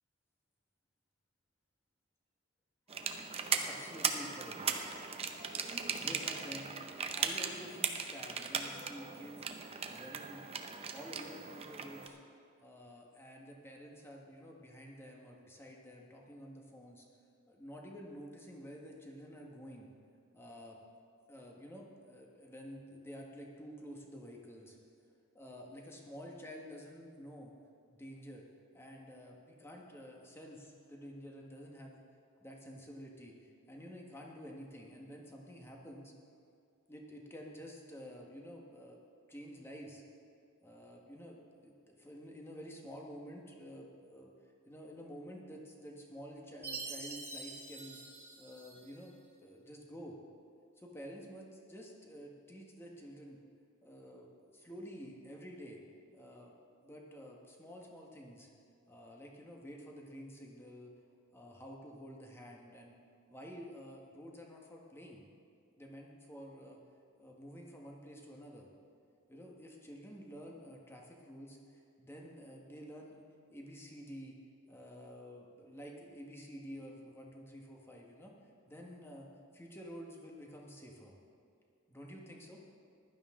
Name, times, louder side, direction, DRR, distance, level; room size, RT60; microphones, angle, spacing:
sound 1, 2.9-12.1, right 6 dB, 30° right, 0.7 m, -38 dB
voice 1, 3.6-4.6 6.0-6.7 7.1-9.5 9.9-10.5 10.9-12.2 12.6-17.0 17.5-19.9 20.3-20.8 21.3-24.8 25.3-27.5 27.9-28.4 28.7-32.0 32.4-36.1 36.9-39.0 39.3-40.0 40.6-44.3 44.7-48.0 48.4-49.1 49.4-50.2 50.8-53.4 53.8-55.8 56.1-56.5 56.8-58.5 58.9-60.9 61.3-63.0 63.3-65.3 65.8-66.8 67.2-68.7 69.3-73.2 73.5-74.4 74.7-78.3 78.7-81.1 81.9-82.6, equal, 10° left, -1 dB, 1.4 m, -50 dB
Chime, 46.6-49.1, right 3 dB, 10° right, 2.2 m, -46 dB
15.5 x 11.5 x 3.7 m, 2.4 s
head